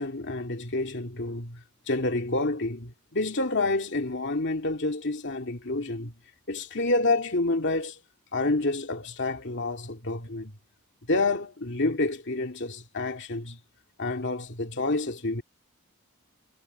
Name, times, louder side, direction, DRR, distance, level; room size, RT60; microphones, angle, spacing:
voice 1, 0.0-6.1 6.5-8.0 8.3-10.5 11.1-13.6 14.0-15.4, left 2 dB, 55° left, 2.6 m, -28 dB
head